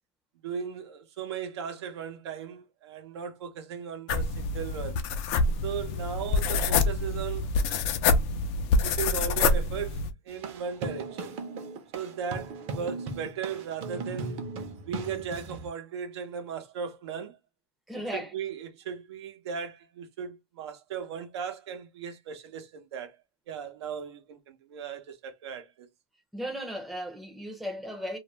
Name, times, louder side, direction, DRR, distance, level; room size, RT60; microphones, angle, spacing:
voice 1, 0.4-5.0 5.6-7.5 8.8-11.4 11.9-14.4 14.9-17.4 18.1-23.2 23.5-25.9, right 7 dB, 80° right, 0.8 m, -37 dB
sound 1, 4.1-10.1, left 3 dB, 50° left, 0.5 m, -26 dB
sound 2, 10.3-15.7, right 3 dB, 40° right, 0.7 m, -38 dB
voice 2, 17.9-18.3 26.3-28.2, equal, ahead, 0.6 m, -36 dB
2.4 x 2.0 x 3.1 m
supercardioid pair, 135°, 14 cm